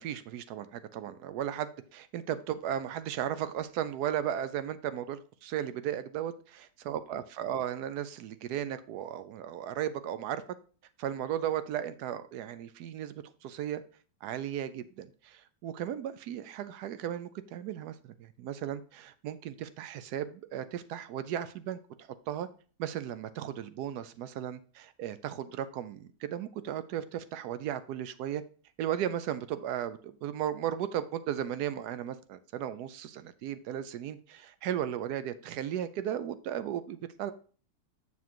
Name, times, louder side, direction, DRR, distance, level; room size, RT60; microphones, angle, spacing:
voice 1, 0.0-10.4 11.0-13.1 13.4-13.8 14.2-22.5 22.8-28.4 28.8-37.3, right 10 dB, 80° right, 13 dB, 1.1 m, -35 dB
7.1 x 6.2 x 2.9 m, 0.39 s
omnidirectional pair, 1.7 m